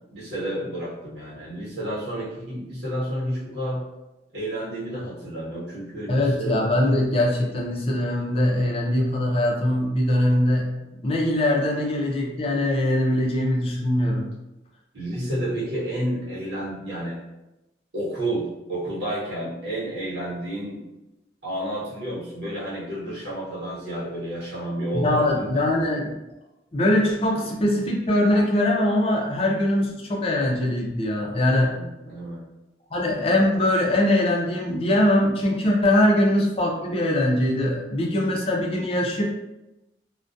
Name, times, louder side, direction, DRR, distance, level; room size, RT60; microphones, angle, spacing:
voice 1, 0.1-3.8 4.3-6.6 10.9-11.0 14.9-17.2 17.9-20.8 21.4-25.6 31.7-32.4, right 1 dB, 65° right, -7 dB, 1.1 m, -30 dB
voice 2, 6.1-10.7 11.0-14.3 24.9-26.1 26.7-31.8 32.9-39.2, left 1 dB, 30° left, -1 dB, 0.4 m, -22 dB
2.3 x 2.1 x 2.6 m, 0.98 s
head